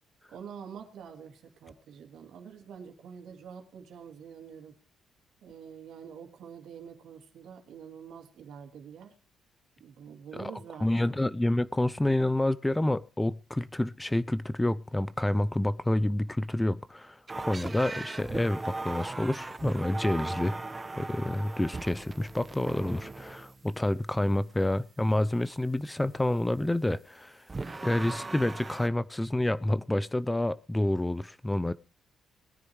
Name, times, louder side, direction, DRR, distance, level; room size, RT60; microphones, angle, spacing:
voice 1, 0.3-4.8 5.4-9.2 9.8-11.2, right 7 dB, 75° right, 2.8 m, -46 dB
voice 2, 10.8-17.2 17.5-20.6 21.0-27.4 27.8-31.7, left 1 dB, 10° left, 0.6 m, -28 dB
sound 1, 17.3-23.6 27.5-28.9, right 3 dB, 25° right, 1.2 m, -38 dB
21.0 x 10.0 x 3.2 m
cardioid pair, 90°, 0 cm